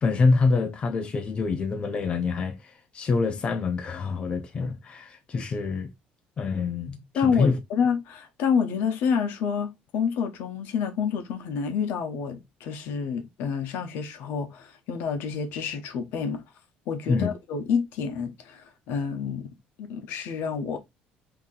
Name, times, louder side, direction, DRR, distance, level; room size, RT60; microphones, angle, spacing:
voice 1, 0.0-5.9 6.4-7.6 17.1-17.3, left 4 dB, 30° left, 0.5 m, -26 dB
voice 2, 7.2-16.4 16.9-19.5 19.8-20.8, left 6 dB, 70° left, 0.8 m, -28 dB
2.8 x 2.7 x 3.8 m
cardioid pair, 130°, 4 cm